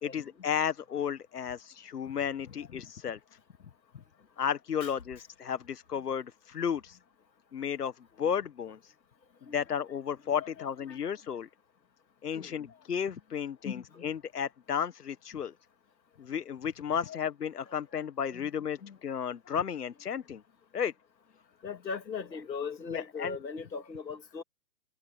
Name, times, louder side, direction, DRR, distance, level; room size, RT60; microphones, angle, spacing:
voice 1, 0.0-3.2 4.4-7.0 7.5-8.9 9.4-11.5 12.2-15.5 16.2-20.4 20.7-20.9 22.9-23.4, left 8 dB, 65° left, 1.4 m, -33 dB
voice 2, 10.4-11.1 12.3-12.7 13.6-14.1 17.0-17.2 17.9-18.0 18.3-18.5 18.8-19.0 21.6-24.4, left 5 dB, 90° left, 3.2 m, -40 dB
hypercardioid pair, 170°, 50 cm